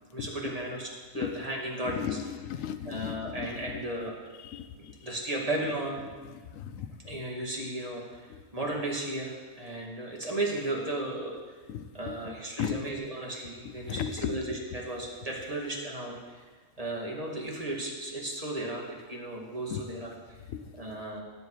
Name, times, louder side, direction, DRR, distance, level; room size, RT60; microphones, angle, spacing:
voice 1, 0.1-2.2 2.9-4.2 4.7-6.0 7.1-8.3 8.5-11.4 11.9-16.5 16.8-20.4 20.7-21.2, right 1 dB, 25° right, -1 dB, 2.2 m, -35 dB
voice 2, 1.8-3.5 4.4-4.7 6.5-6.9 11.7-12.2 12.6-12.8 13.9-14.4 19.7-19.8 20.5-20.6, left 9 dB, 75° left, 11 dB, 1.1 m, -35 dB
17.0 x 8.5 x 4.8 m, 1.4 s
omnidirectional pair, 1.5 m